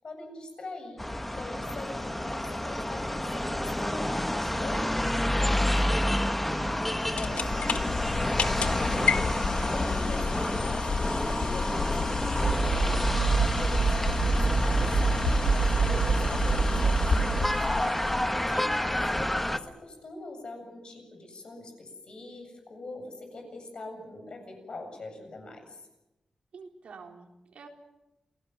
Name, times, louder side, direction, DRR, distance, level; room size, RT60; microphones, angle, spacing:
voice 1, 0.0-6.1 7.0-13.0 13.5-17.7 18.4-19.1 19.5-25.9, left 2 dB, 50° left, 4 dB, 7.9 m, -43 dB
sound 1, 1.0-19.6, left 1 dB, 10° left, 1.1 m, -29 dB
voice 2, 6.5-6.8 17.9-18.6 26.5-27.7, right 5 dB, 90° right, 2 dB, 3.9 m, -48 dB
sound 2, 6.7-18.5, left 5 dB, 85° left, 1.4 m, -32 dB
sound 3, 12.4-17.5, right 5 dB, 65° right, 0.8 m, -26 dB
28.0 x 18.0 x 7.6 m, 0.96 s
wide cardioid pair, 150°, 2 cm